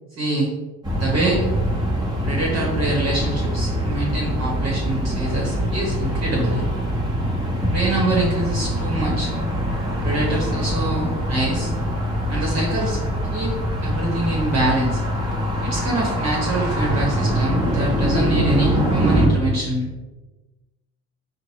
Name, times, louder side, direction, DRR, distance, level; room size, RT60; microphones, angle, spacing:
voice 1, 0.2-0.5 1.0-1.4 2.2-6.6 7.7-9.3 10.0-11.7 12.3-13.0 13.3-13.5 13.8-15.0 15.6-19.9, right 2 dB, 55° right, -3 dB, 1.3 m, -24 dB
sound 1, 0.8-19.3, equal, 15° right, 1.3 m, -23 dB
4.4 x 2.5 x 3.0 m, 1.2 s
cardioid pair, 90°, 30 cm